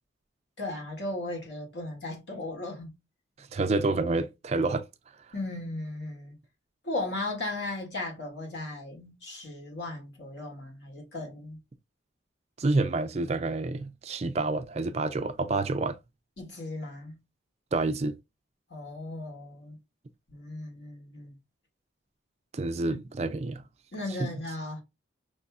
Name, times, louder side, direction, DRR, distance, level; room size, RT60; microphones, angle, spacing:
voice 1, 0.6-2.9 5.3-6.4 6.8-11.6 16.4-17.2 18.7-19.8 20.3-21.4 22.8-23.0 23.9-24.8, left 2 dB, 65° left, 2.0 m, -36 dB
voice 2, 3.4-4.9 12.6-16.0 17.7-18.2 22.5-23.6 24.2-24.3, right 3 dB, 35° right, 0.4 m, -28 dB
5.3 x 3.2 x 2.3 m
head